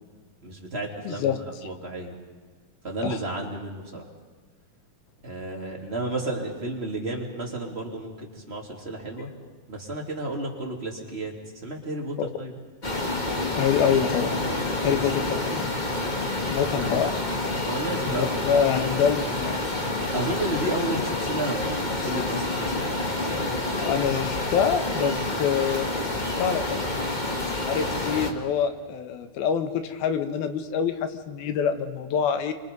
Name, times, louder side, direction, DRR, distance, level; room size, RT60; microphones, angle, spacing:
voice 1, 0.4-2.1 2.8-4.1 5.2-9.3 9.7-11.3 11.6-12.5 14.9-15.0 16.7-17.0 17.6-18.3 20.0-23.0, right 2 dB, 20° right, 0 dB, 2.6 m, -32 dB
voice 2, 1.1-1.4 3.0-3.2 12.2-12.3 13.5-14.4 14.8-15.8 16.5-17.2 18.1-19.6 23.8-25.9 26.2-27.1 27.6-32.5, left 7 dB, 85° left, 8 dB, 3.2 m, -26 dB
sound 1, 12.8-28.3, left 2 dB, 55° left, 0.5 m, -28 dB
29.0 x 24.5 x 5.4 m, 1.4 s
omnidirectional pair, 4.2 m